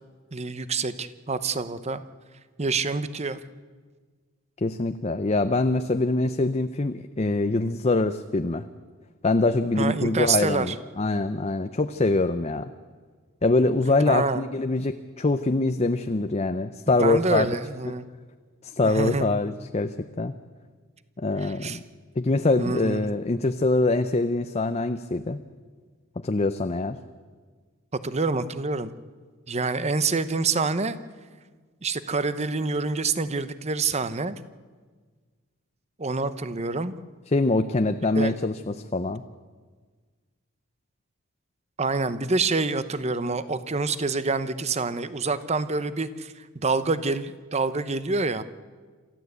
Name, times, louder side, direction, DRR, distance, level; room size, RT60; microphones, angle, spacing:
voice 1, 0.3-2.0 2.6-3.4 9.8-10.7 14.0-14.4 17.0-18.1 18.8-19.3 21.4-21.8 22.6-23.1 27.9-28.9 29.5-31.0 31.8-34.4 36.0-36.9 38.2-38.3 41.8-48.4, right 3 dB, 30° right, 13 dB, 0.8 m, -27 dB
voice 2, 4.6-8.7 9.2-12.7 13.4-17.5 17.9-18.0 18.6-20.3 21.2-21.8 22.2-25.4 26.2-27.0 37.3-39.2, left 2 dB, 30° left, 9 dB, 0.6 m, -24 dB
27.5 x 14.0 x 8.1 m, 1.5 s
head